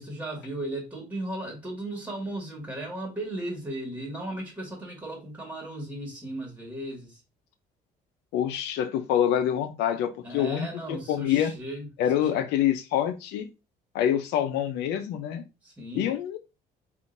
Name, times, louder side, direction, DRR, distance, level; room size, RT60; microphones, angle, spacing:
voice 1, 0.0-7.2 10.2-11.9 12.3-12.4 15.6-16.1, right 1 dB, 10° right, 1.5 m, -36 dB
voice 2, 8.3-11.5 12.0-13.5 13.9-15.4 15.9-16.4, left 10 dB, 85° left, 0.6 m, -26 dB
3.6 x 2.6 x 2.5 m
cardioid pair, 110°, 17 cm